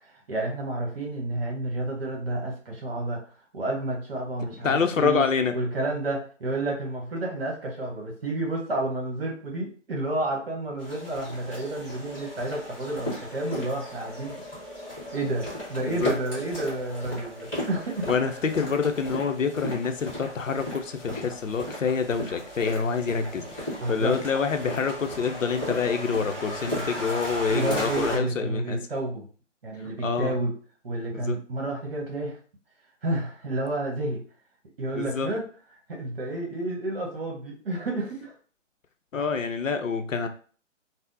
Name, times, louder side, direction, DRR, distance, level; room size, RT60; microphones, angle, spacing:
voice 1, 0.0-3.2 3.5-5.2 5.5-14.4 15.1-18.7 23.8-24.2 27.5-29.2 29.6-30.5 30.8-32.4 33.0-34.2 34.8-35.4 35.9-38.3, right 2 dB, 50° right, -1 dB, 1.0 m, -30 dB
voice 2, 4.6-5.5 15.8-16.1 18.1-28.8 30.0-30.4 31.1-31.4 34.9-35.3 39.1-40.3, left 5 dB, 85° left, 7 dB, 0.6 m, -27 dB
sound 1, 10.8-28.2, equal, 10° left, 1.3 m, -36 dB
3.5 x 2.0 x 2.5 m, 0.42 s
figure-of-eight pair, 140°, 37 cm